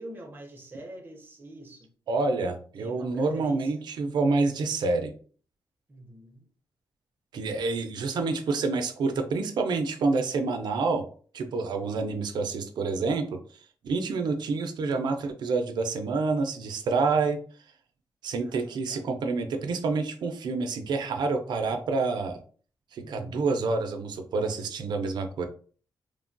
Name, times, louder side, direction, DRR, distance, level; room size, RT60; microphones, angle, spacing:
voice 1, 0.0-1.9 2.8-3.9 5.9-6.5 18.4-19.0 23.0-23.5, right 1 dB, 25° right, 0.6 m, -45 dB
voice 2, 2.1-5.1 7.3-11.0 11.3-13.4 13.8-17.4 18.2-22.4 22.9-25.5, right 3 dB, 70° right, 0.4 m, -28 dB
3.1 x 2.2 x 2.5 m
wide cardioid pair, 165°, 8 cm